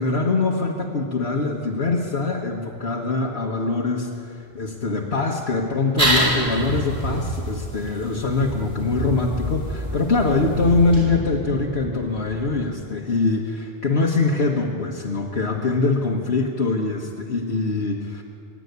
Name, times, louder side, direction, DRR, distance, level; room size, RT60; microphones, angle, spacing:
voice 1, 0.0-18.2, left 3 dB, 75° left, -2 dB, 1.7 m, -23 dB
sound 1, 4.4-4.7 5.3-5.8 6.3-7.5 7.9-12.6, right 1 dB, 10° right, 1.1 m, -37 dB
sound 2, 6.0-11.0, equal, 35° right, 7.7 m, -26 dB
24.5 x 12.0 x 9.6 m, 2.5 s
omnidirectional pair, 1.1 m